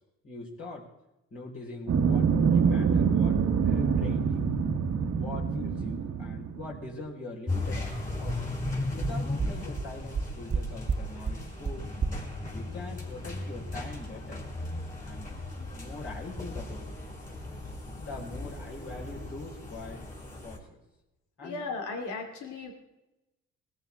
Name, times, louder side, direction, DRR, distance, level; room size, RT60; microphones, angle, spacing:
voice 1, 0.2-0.9 1.3-4.6 5.2-8.4 9.0-11.9 12.5-14.4 15.0-15.4 15.7-17.0 18.0-20.1 20.4-20.8 21.4-21.6, left 2 dB, 45° left, -5 dB, 4.8 m, -42 dB
sound 1, 1.9-6.9, right 6 dB, 60° right, 1.4 m, -25 dB
sound 2, 7.5-20.6, left 2 dB, 25° left, 5.1 m, -37 dB
sound 3, 7.9-8.0 8.3-8.4 8.6-8.7 9.0-9.1 9.4-9.5 9.8-9.9 10.1-10.6 10.9-11.0 11.2-11.3 11.6-11.7 12.0-12.1, right 5 dB, 35° right, 1.1 m, -28 dB
voice 2, 21.4-22.7, left 3 dB, 80° left, 3 dB, 2.6 m, -36 dB
21.0 x 14.0 x 3.6 m, 0.94 s
cardioid pair, 90°, 30 cm